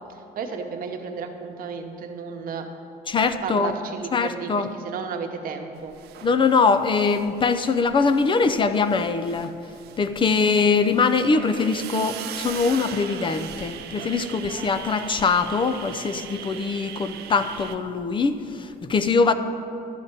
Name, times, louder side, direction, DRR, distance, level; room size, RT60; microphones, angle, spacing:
voice 1, 0.1-2.7 3.4-6.0 10.7-11.0, right 5 dB, 60° right, 5 dB, 1.0 m, -33 dB
voice 2, 3.1-3.7 4.1-4.7 6.2-9.5 10.0-19.3, left 4 dB, 30° left, 9 dB, 0.5 m, -22 dB
sound 1, 5.9-7.7 8.0-17.8, right 10 dB, 75° right, 0.6 m, -39 dB
12.5 x 4.2 x 8.2 m, 2.7 s
cardioid pair, 110°, 17 cm